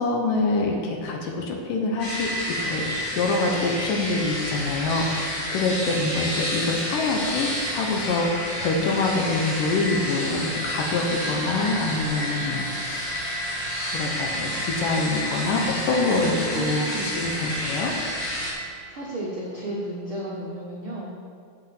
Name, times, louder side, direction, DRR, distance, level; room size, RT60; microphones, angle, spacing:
voice 1, 0.0-2.9 3.1-13.2 13.9-17.9, left 3 dB, 70° left, 1 dB, 2.4 m, -25 dB
sound 1, 2.0-18.5, equal, 45° left, 4.0 m, -30 dB
voice 2, 16.2-17.1 18.9-21.1, right 1 dB, 80° right, -5 dB, 1.1 m, -33 dB
8.0 x 7.2 x 7.5 m, 2.3 s
omnidirectional pair, 4.5 m